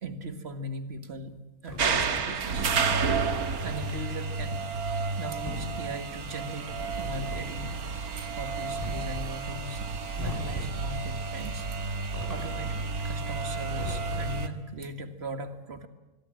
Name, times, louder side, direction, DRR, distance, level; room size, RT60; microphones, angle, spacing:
voice 1, 0.0-2.8 3.6-7.8 8.2-9.8 10.2-11.7 12.3-12.8 13.0-15.9, right 1 dB, 45° right, 8 dB, 2.1 m, -39 dB
sound 1, 1.6-2.4 3.5-4.0 5.2-5.8 6.7-7.5 8.7-9.3 10.2-10.9 12.1-12.8 13.7-14.5, left 1 dB, 10° left, 8.1 m, -39 dB
sound 2, 1.8-14.5, right 4 dB, 80° right, 2.0 m, -31 dB
25.0 x 22.0 x 7.7 m, 1.1 s
omnidirectional pair, 1.5 m